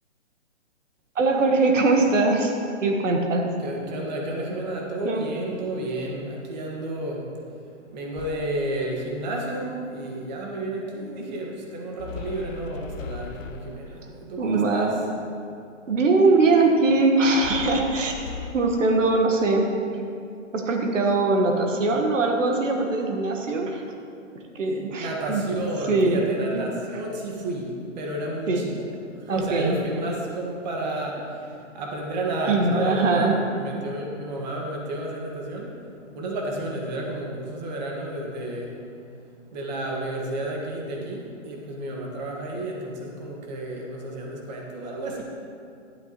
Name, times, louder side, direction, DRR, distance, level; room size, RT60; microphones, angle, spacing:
voice 1, 1.1-2.5 2.8-3.5 5.0-5.4 14.0-14.1 14.4-15.0 15.9-18.2 18.5-19.7 20.5-23.8 24.5-26.2 26.5-27.0 28.5-28.7 29.3-29.8 32.5-33.3, right 3 dB, 75° right, 2 dB, 1.4 m, -22 dB
voice 2, 3.6-7.3 7.9-15.0 25.0-28.7 29.1-31.3 31.7-35.7 36.1-38.7 39.5-45.2, right 1 dB, 35° right, -1 dB, 1.5 m, -31 dB
sound 1, 8.2-8.8 12.0-14.0 17.4-18.5, left 4 dB, 90° left, 0.7 m, -37 dB
11.5 x 11.5 x 3.0 m, 2.5 s
hypercardioid pair, 160°, 37 cm